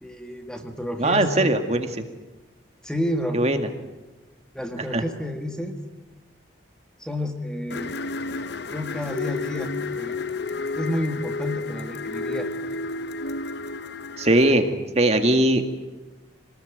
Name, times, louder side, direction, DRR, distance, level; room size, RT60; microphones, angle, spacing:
voice 1, 0.0-1.5 2.8-3.4 4.5-5.8 7.0-7.9 8.7-10.2 10.7-12.5, left 1 dB, 5° left, 5 dB, 1.9 m, -30 dB
voice 2, 1.0-2.0 3.3-3.7 4.9-5.0 14.2-14.7 15.0-15.7, right 1 dB, 35° right, 6 dB, 2.1 m, -20 dB
sound 1, 7.7-14.5, left 3 dB, 60° left, 0.8 m, -31 dB
27.0 x 20.0 x 9.4 m, 1.2 s
head